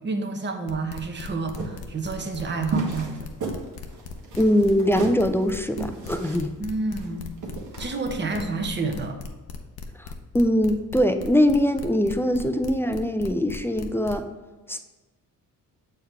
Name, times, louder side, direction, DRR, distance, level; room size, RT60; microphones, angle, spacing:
voice 1, 0.0-3.3 6.6-7.3 7.8-9.2, right 3 dB, 30° right, 5 dB, 0.9 m, -29 dB
sound 1, 0.7-14.2, left 5 dB, 75° left, 0.8 m, -38 dB
sound 2, 1.5-9.0, right 3 dB, 55° right, 1.3 m, -34 dB
voice 2, 4.4-6.5 10.0-14.3 14.7-14.8, equal, 5° left, 7 dB, 0.3 m, -22 dB
7.1 x 4.6 x 3.4 m, 1.2 s
cardioid pair, 90°, 37 cm